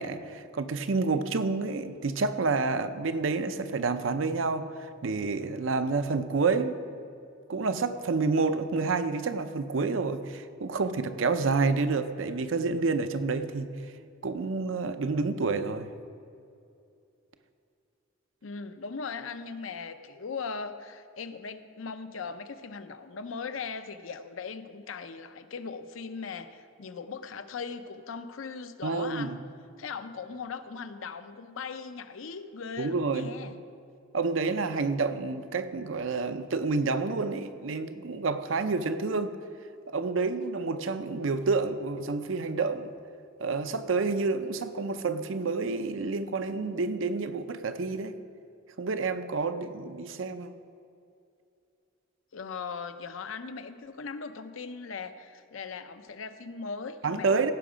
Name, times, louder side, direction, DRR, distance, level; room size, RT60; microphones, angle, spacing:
voice 1, 0.0-6.8 7.5-13.7 14.2-15.9 28.8-29.4 32.8-33.3 34.1-39.4 39.9-42.9 43.4-48.2 48.8-50.5 57.0-57.5, right 4 dB, 70° right, 10 dB, 0.6 m, -29 dB
voice 2, 18.4-29.4 29.8-33.6 52.3-57.3, left 5 dB, 75° left, 10 dB, 0.6 m, -39 dB
16.5 x 6.0 x 5.0 m, 2.6 s
head